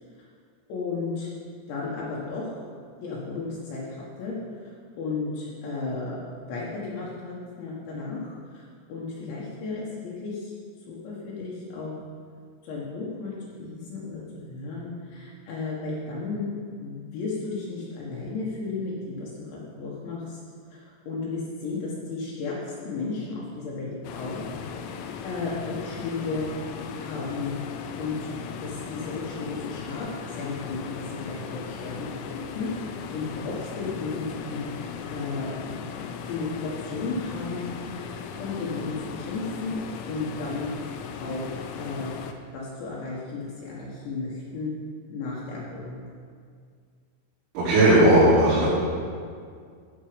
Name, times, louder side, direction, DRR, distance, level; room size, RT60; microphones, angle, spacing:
voice 1, 0.7-1.3 1.7-2.6 3.0-4.4 4.6-10.5 10.9-11.9 12.6-16.5 16.8-20.4 20.7-24.4 24.9-26.5 27.0-27.5 28.0-28.3 28.6-35.8 36.3-38.1 38.4-39.8 40.1-40.8 41.2-42.1 42.5-44.7 45.1-46.1, left 3 dB, 70° left, -6 dB, 3.5 m, -34 dB
sound 1, 24.0-42.3, left 6 dB, 90° left, 3.3 m, -37 dB
voice 2, 47.5-48.7, right 1 dB, 90° right, -14 dB, 5.9 m, -17 dB
15.0 x 6.6 x 5.1 m, 2.1 s
omnidirectional pair, 5.8 m